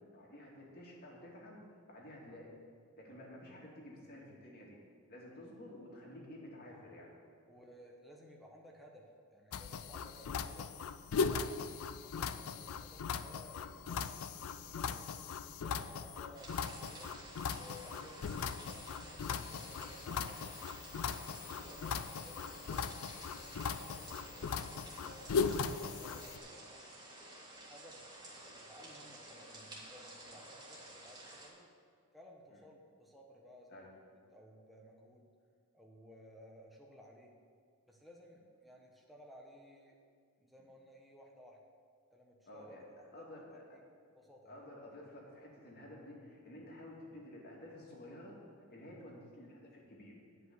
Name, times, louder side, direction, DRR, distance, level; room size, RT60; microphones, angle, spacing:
voice 1, 0.1-1.6 1.9-2.5 3.0-4.8 5.1-7.2 30.2-30.4 32.5-32.6 33.7-33.9 42.4-42.8 43.1-43.6 44.5-48.4 48.7-50.1, left 1 dB, 45° left, -2 dB, 2.2 m, -52 dB
voice 2, 7.5-10.7 11.2-14.2 14.6-17.1 17.5-20.7 21.1-22.9 23.8-26.5 27.6-31.7 32.1-35.2 35.7-37.3 37.9-40.0 40.4-41.6 42.1-43.4 43.7-43.8 44.1-44.6, equal, ahead, -1 dB, 1.0 m, -58 dB
sound 1, 9.5-26.4, left 5 dB, 70° left, 0.4 m, -39 dB
sound 2, 16.3-31.5, right 1 dB, 20° right, 1.9 m, -52 dB
9.9 x 5.6 x 8.1 m, 2.1 s
head